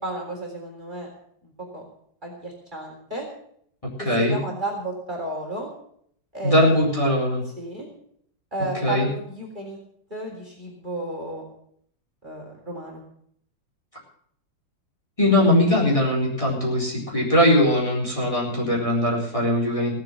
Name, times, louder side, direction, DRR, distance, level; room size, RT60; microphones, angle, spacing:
voice 1, 0.0-1.1 1.4-1.9 2.2-3.3 4.0-5.7 6.3-6.9 7.6-7.9 8.5-9.8 10.1-11.5 12.2-13.0, right 1 dB, 25° right, -1 dB, 3.8 m, -33 dB
voice 2, 4.0-4.4 6.4-7.4 8.8-9.1 15.2-19.9, left 1 dB, 15° left, -4 dB, 4.2 m, -20 dB
17.5 x 7.8 x 7.7 m, 0.65 s
omnidirectional pair, 2.0 m